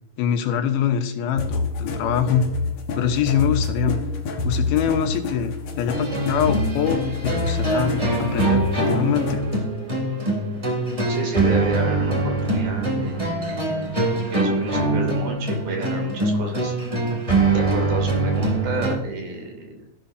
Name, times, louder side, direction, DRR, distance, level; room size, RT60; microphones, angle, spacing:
voice 1, 0.2-2.5 2.9-4.0 4.3-9.4, left 8 dB, 90° left, 6 dB, 3.0 m, -24 dB
sound 1, 1.4-9.6, left 3 dB, 60° left, 2.3 m, -27 dB
sound 2, 5.9-19.0, right 2 dB, 10° right, 1.7 m, -23 dB
voice 2, 11.1-13.4 14.3-16.7 17.5-19.9, right 3 dB, 75° right, 2 dB, 4.6 m, -30 dB
14.5 x 11.5 x 2.7 m, 0.72 s
omnidirectional pair, 4.2 m